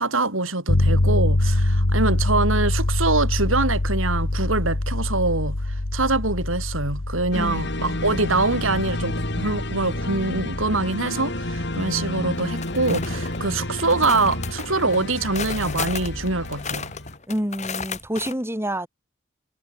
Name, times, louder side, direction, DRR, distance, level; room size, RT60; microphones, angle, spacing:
voice 1, 0.0-16.9, right 3 dB, 80° right, 5.7 m, -24 dB
sound 1, 0.7-10.8, left 1 dB, 90° left, 1.7 m, -24 dB
sound 2, 7.3-17.2, left 1 dB, 55° left, 3.6 m, -30 dB
voice 2, 7.3-8.0 17.3-18.9, equal, 10° right, 5.4 m, -28 dB
sound 3, 12.4-13.4 13.8-18.3, left 6 dB, 35° left, 2.2 m, -34 dB
head